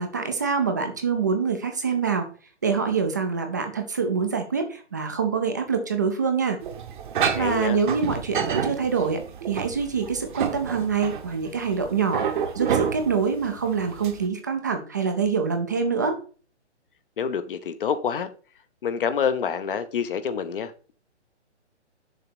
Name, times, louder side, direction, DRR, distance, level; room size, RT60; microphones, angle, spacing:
voice 1, 0.0-2.3 2.6-6.6 7.3-12.3 12.5-16.2, right 5 dB, 15° right, 0.4 m, -25 dB
sound 1, 6.6-14.3, right 7 dB, 45° right, 0.9 m, -29 dB
voice 2, 7.4-7.8 17.2-18.3 18.8-20.9, left 7 dB, 50° left, 0.8 m, -27 dB
6.6 x 3.8 x 6.0 m
hypercardioid pair, 150°, 35 cm